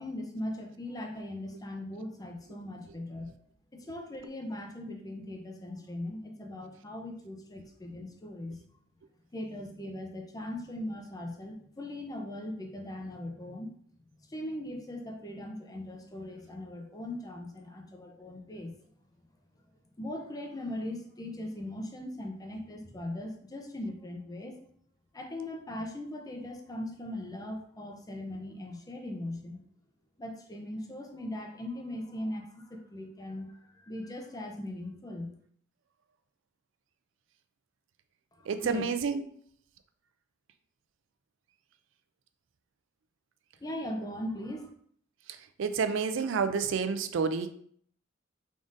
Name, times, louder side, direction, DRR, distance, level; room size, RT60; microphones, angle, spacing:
voice 1, 0.0-3.3 3.7-8.6 9.3-13.7 14.1-18.7 20.0-24.6 25.1-29.6 30.2-35.3 38.3-38.8 43.6-44.7, left 1 dB, 20° left, 3 dB, 0.5 m, -39 dB
voice 2, 38.5-39.2 45.6-47.5, right 5 dB, 70° right, 10 dB, 0.4 m, -29 dB
3.9 x 3.6 x 2.5 m, 0.62 s
head